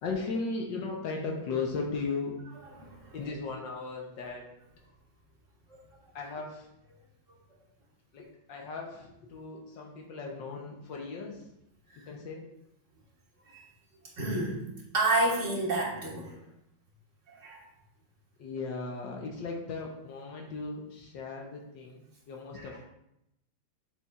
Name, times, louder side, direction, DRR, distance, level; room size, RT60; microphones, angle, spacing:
voice 1, 0.0-2.4 3.1-4.4 6.1-6.7 8.1-11.5 12.1-12.4 18.4-22.8, left 4 dB, 70° left, 0 dB, 1.6 m, -37 dB
voice 2, 2.8-3.2 5.7-6.0 13.5-13.6 14.2-14.7 14.9-16.4 17.3-17.6, right 2 dB, 40° right, -3 dB, 1.9 m, -30 dB
7.4 x 6.9 x 2.4 m, 0.82 s
omnidirectional pair, 2.1 m